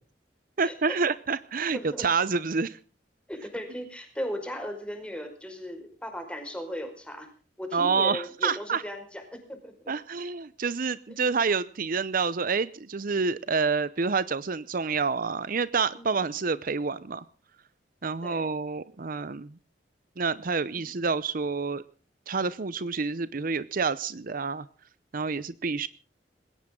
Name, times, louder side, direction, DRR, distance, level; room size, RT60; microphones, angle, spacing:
voice 1, 0.6-2.8 7.7-8.8 9.9-17.2 18.0-19.5 20.2-21.8 22.3-24.7 25.1-25.9, right 5 dB, 50° right, 16 dB, 0.7 m, -28 dB
voice 2, 1.7-2.1 3.3-7.3 7.6-9.9 15.9-16.2 18.2-18.5 20.7-20.9, equal, 5° left, 5 dB, 5.0 m, -37 dB
21.0 x 17.5 x 3.8 m, 0.39 s
head